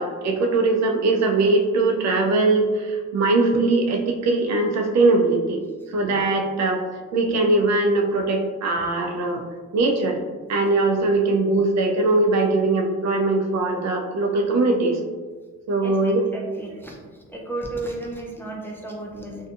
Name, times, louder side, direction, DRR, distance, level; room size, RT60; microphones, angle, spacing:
voice 1, 0.0-5.6 5.9-6.8 7.1-9.5 9.7-10.2 10.5-15.0 15.7-16.2, right 2 dB, 60° right, 2 dB, 0.5 m, -21 dB
voice 2, 15.8-19.5, right 2 dB, 5° left, -2 dB, 0.4 m, -34 dB
2.6 x 2.3 x 2.5 m, 1.4 s
cardioid pair, 90°, 30 cm